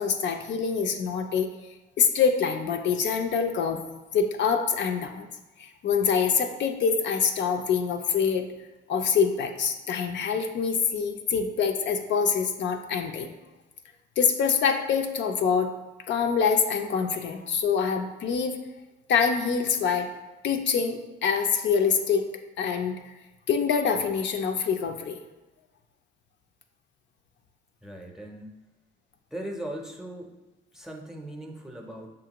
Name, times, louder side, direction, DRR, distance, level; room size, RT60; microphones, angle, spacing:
voice 1, 0.0-1.5 2.0-3.9 4.1-5.3 5.6-8.5 8.9-13.3 14.2-15.7 16.1-18.6 19.1-20.1 20.4-22.2 22.6-23.1 23.5-25.2, left 6 dB, 65° left, 5 dB, 0.4 m, -25 dB
voice 2, 27.8-28.6 29.3-30.3 30.7-32.1, right 1 dB, ahead, 2 dB, 0.6 m, -39 dB
6.6 x 2.5 x 2.9 m, 1.1 s
cardioid pair, 90°, 20 cm